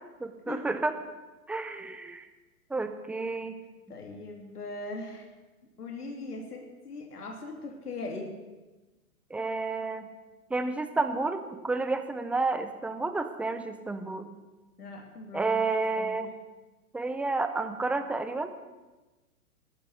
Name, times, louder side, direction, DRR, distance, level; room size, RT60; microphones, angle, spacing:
voice 1, 0.2-1.0 1.5-2.2 2.7-3.6 9.3-10.1 10.5-14.3 15.3-16.3 16.9-18.5, right 3 dB, 5° right, 9 dB, 0.5 m, -30 dB
voice 2, 3.9-5.2 5.8-8.3 14.8-15.6 16.0-16.2, left 2 dB, 90° left, 2 dB, 2.9 m, -40 dB
12.5 x 12.5 x 8.0 m, 1.2 s
hypercardioid pair, 125°, 45 cm